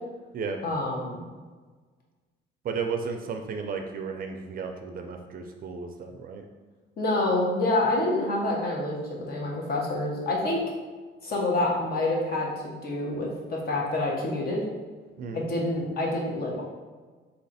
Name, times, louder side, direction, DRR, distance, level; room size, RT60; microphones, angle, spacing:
voice 1, 0.6-1.2 7.0-10.6 11.2-14.6 15.3-16.6, left 2 dB, 50° left, -2 dB, 1.2 m, -27 dB
voice 2, 2.6-6.5 15.2-15.4, right 5 dB, 45° right, 4 dB, 0.5 m, -34 dB
4.0 x 2.9 x 4.1 m, 1.4 s
cardioid pair, 125°, 20 cm